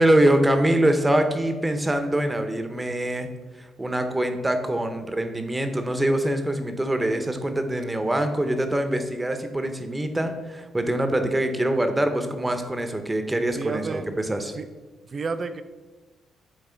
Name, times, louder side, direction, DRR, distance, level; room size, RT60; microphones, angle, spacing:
voice 1, 0.0-14.5, right 1 dB, 15° right, 7 dB, 0.8 m, -24 dB
voice 2, 13.6-14.1 14.6-14.7 15.1-15.6, right 4 dB, 40° right, 11 dB, 0.5 m, -30 dB
8.8 x 3.2 x 4.4 m, 1.3 s
cardioid pair, 90°, 0 cm